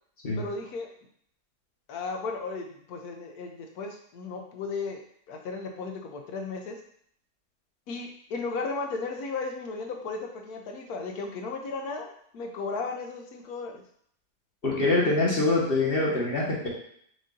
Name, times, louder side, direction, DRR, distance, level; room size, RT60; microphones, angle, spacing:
voice 1, 0.3-0.9 1.9-5.0 5.3-6.8 7.9-12.1 12.3-13.8, left 4 dB, 70° left, 3 dB, 1.1 m, -35 dB
voice 2, 14.6-16.7, left 2 dB, 40° left, -4 dB, 1.3 m, -24 dB
5.4 x 2.6 x 3.7 m, 0.65 s
omnidirectional pair, 1.7 m